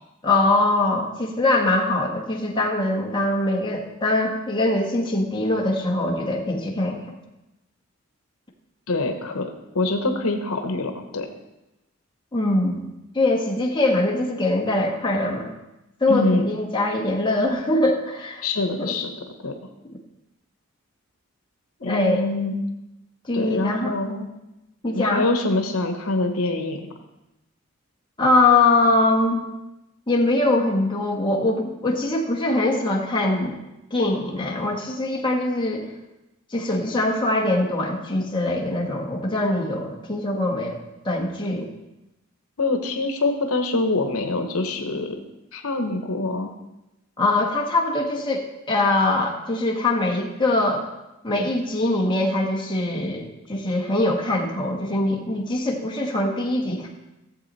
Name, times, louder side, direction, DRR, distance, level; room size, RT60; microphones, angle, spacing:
voice 1, 0.2-7.2 12.3-12.9 13.1-15.5 16.0-18.4 18.8-19.0 21.8-22.2 23.3-23.9 24.8-25.3 28.2-29.5 30.1-33.6 33.9-35.9 36.5-40.8 41.0-41.7 47.2-50.9 51.2-56.9, left 2 dB, 20° left, -1 dB, 1.4 m, -22 dB
voice 2, 8.9-9.5 9.7-11.3 16.1-16.5 18.4-19.1 19.4-19.5 21.8-22.6 23.3-24.3 24.9-26.9 42.6-45.2 45.5-46.5, left 2 dB, 80° left, 5 dB, 1.0 m, -25 dB
15.0 x 7.5 x 4.1 m, 0.96 s
head